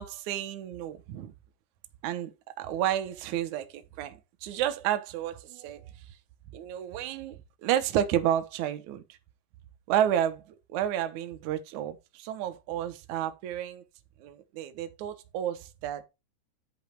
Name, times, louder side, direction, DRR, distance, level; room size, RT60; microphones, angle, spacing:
voice 1, 0.0-1.3 2.0-5.8 6.5-9.0 9.9-10.4 10.7-13.8 14.2-16.1, right 11 dB, 80° right, 1.7 m, -31 dB
10.5 x 5.3 x 4.5 m
omnidirectional pair, 5.0 m